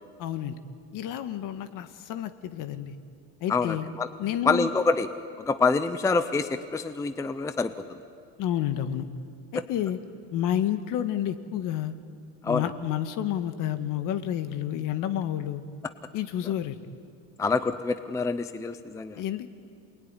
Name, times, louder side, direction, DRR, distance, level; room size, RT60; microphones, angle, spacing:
voice 1, 0.2-0.6 0.9-2.9 3.4-3.9 4.2-4.7 8.4-9.1 9.5-10.0 10.3-11.9 12.4-15.6 16.1-16.8 19.2-19.5, left 11 dB, 50° left, 9 dB, 1.7 m, -30 dB
voice 2, 3.5-4.1 4.4-5.1 5.5-7.7 9.5-9.6 12.4-12.7 17.4-19.2, left 4 dB, 10° left, 10 dB, 0.6 m, -26 dB
28.5 x 21.0 x 9.9 m, 2.4 s
cardioid pair, 150°, 41 cm